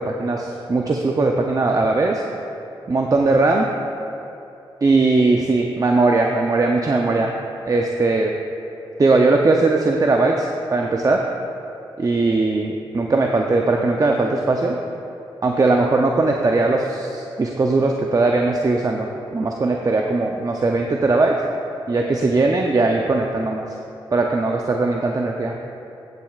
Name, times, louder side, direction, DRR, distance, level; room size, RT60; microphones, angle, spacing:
voice 1, 0.0-2.2 2.9-3.7 4.8-7.3 7.7-8.3 9.0-11.2 12.0-14.8 15.4-21.3 21.9-23.7 24.1-25.5, right 3 dB, 35° right, 1 dB, 0.6 m, -19 dB
14.0 x 7.6 x 2.4 m, 2.8 s
cardioid pair, 50°, 10 cm